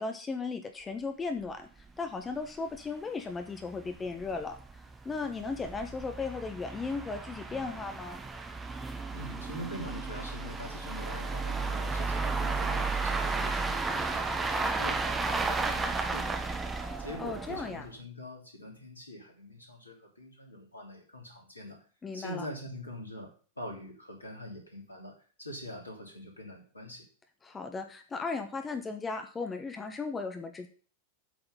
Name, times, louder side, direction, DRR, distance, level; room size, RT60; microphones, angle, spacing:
voice 1, 0.0-1.7 2.0-4.6 5.0-8.2 17.2-17.9 22.0-22.5 27.4-30.7, left 4 dB, 15° left, 6 dB, 1.1 m, -36 dB
sound 1, 1.4-1.5 1.8-1.9 2.3-2.4 2.7-2.8 3.5-17.9, right 3 dB, 15° right, 1.2 m, -33 dB
voice 2, 9.1-16.5 17.0-21.8 22.1-23.3 23.6-25.1 25.4-27.0, equal, 80° left, 1 dB, 3.1 m, -44 dB
8.6 x 5.6 x 5.6 m, 0.40 s
figure-of-eight pair, 90°, 0 cm